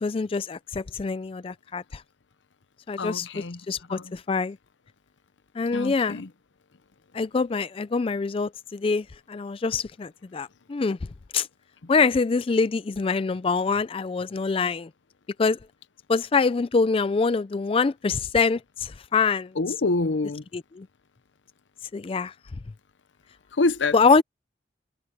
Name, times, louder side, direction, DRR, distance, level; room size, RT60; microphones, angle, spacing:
voice 1, 0.0-2.0 2.9-4.6 5.6-6.2 7.1-11.0 11.3-11.5 11.9-14.9 15.4-15.6 16.1-19.5 20.5-20.9 21.9-22.3 23.9-24.2, left 4 dB, 30° left, 0.3 m, -25 dB
voice 2, 3.0-3.6 3.9-4.1 5.7-6.3 19.6-20.4 23.6-23.9, left 3 dB, 80° left, 0.8 m, -26 dB
head